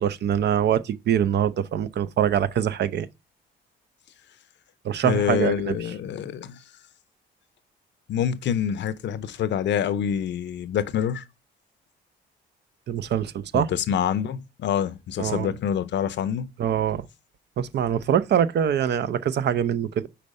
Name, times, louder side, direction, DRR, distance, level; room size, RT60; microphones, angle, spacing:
voice 1, 0.0-3.1 4.8-5.8 12.9-13.7 15.2-15.5 16.6-17.1 17.6-20.1, right 9 dB, 60° right, 0.5 m, -24 dB
voice 2, 5.0-6.6 8.1-11.2 13.5-16.5, left 8 dB, 65° left, 0.7 m, -26 dB
5.1 x 4.3 x 5.2 m
cardioid pair, 90°, 20 cm